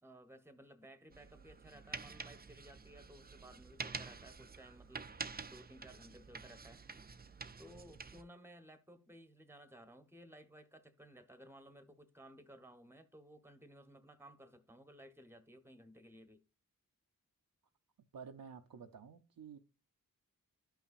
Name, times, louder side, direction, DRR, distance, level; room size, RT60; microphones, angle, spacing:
voice 1, 0.0-5.2 5.5-6.8 7.6-16.4, right 1 dB, 5° right, 1.1 m, -57 dB
sound 1, 1.1-8.2, right 4 dB, 25° right, 0.5 m, -48 dB
voice 2, 18.1-19.6, right 6 dB, 70° right, 0.7 m, -51 dB
11.5 x 5.7 x 2.5 m
cardioid pair, 40°, 35 cm